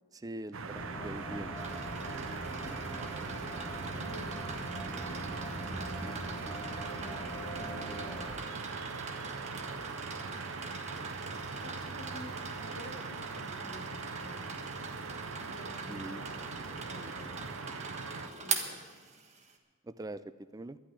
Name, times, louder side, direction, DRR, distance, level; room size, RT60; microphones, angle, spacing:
voice 1, 0.1-1.6 15.9-16.3 19.8-20.8, right 1 dB, 15° right, 14 dB, 0.3 m, -43 dB
Atmo Mainspielplatz in the afternoorn (December), 0.5-18.3, right 5 dB, 65° right, 0.7 m, -41 dB
sound 1, 0.7-8.3, equal, 25° left, 1.5 m, -43 dB
sound 2, 1.6-19.5, right 4 dB, 30° right, 1.3 m, -43 dB
voice 2, 2.1-2.8 3.1-3.3 3.9-5.5 7.5-8.6 11.6-14.4 15.4-17.4 18.4-18.8, left 1 dB, 70° left, 2 dB, 2.1 m, -50 dB
12.0 x 8.9 x 9.9 m, 1.5 s
head